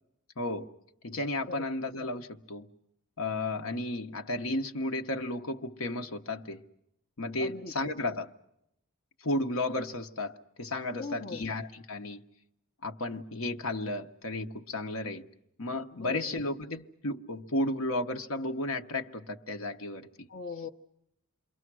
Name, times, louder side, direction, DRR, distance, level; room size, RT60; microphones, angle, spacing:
voice 1, 0.4-0.7 1.0-2.7 3.2-6.6 7.2-8.3 9.2-12.2 12.8-15.3 15.6-20.3, left 2 dB, 70° left, 1.2 m, -33 dB
voice 2, 7.4-7.7 10.9-11.5 15.9-16.4 20.3-20.7, left 4 dB, 45° left, 0.9 m, -40 dB
28.5 x 23.0 x 6.2 m
head